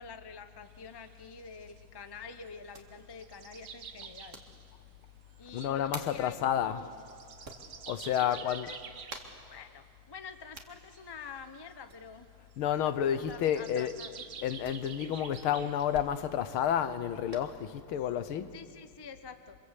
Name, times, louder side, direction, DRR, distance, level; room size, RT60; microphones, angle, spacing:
voice 1, 0.0-4.4 5.4-6.9 8.2-8.8 9.5-12.3 12.8-14.2 18.5-19.6, left 5 dB, 35° left, 0.4 m, -47 dB
sound 1, 0.7-1.8 2.3-2.5 3.1-4.7 5.4-9.2 10.7-11.8 12.6-12.8 13.2-15.9 16.5-16.6 16.8-17.0, right 6 dB, 80° right, 2.3 m, -48 dB
sound 2, 2.1-17.5, right 2 dB, 35° right, 2.3 m, -54 dB
voice 2, 5.5-6.8 7.9-8.7 12.6-13.9 14.4-18.6, left 9 dB, 80° left, 1.8 m, -30 dB
29.0 x 25.0 x 8.2 m
omnidirectional pair, 2.3 m